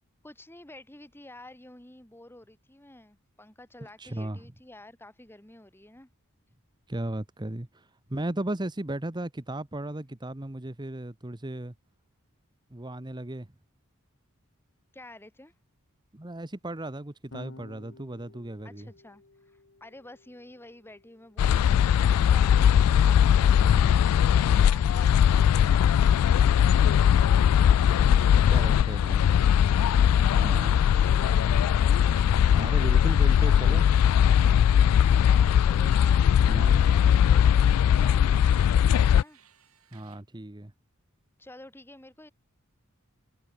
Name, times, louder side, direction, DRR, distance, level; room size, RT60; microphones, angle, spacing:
voice 1, 0.2-6.1 14.9-15.5 18.6-27.6 30.0-30.5 30.9-33.4 34.9-39.4 41.4-42.3, left 1 dB, 10° left, 1.5 m, -50 dB
voice 2, 4.0-4.4 6.9-11.7 12.7-13.5 16.1-18.9 23.6-23.9 28.5-29.3 30.3-30.8 32.6-33.8 36.4-36.8 39.9-40.7, right 1 dB, 20° right, 1.0 m, -35 dB
Electric guitar / Bass guitar, 17.3-23.7, left 2 dB, 60° left, 1.4 m, -54 dB
sound 1, 21.4-39.2, left 9 dB, 85° left, 0.3 m, -20 dB
sound 2, 31.3-35.0 35.3-37.4 38.0-40.2, right 8 dB, 80° right, 3.6 m, -58 dB
head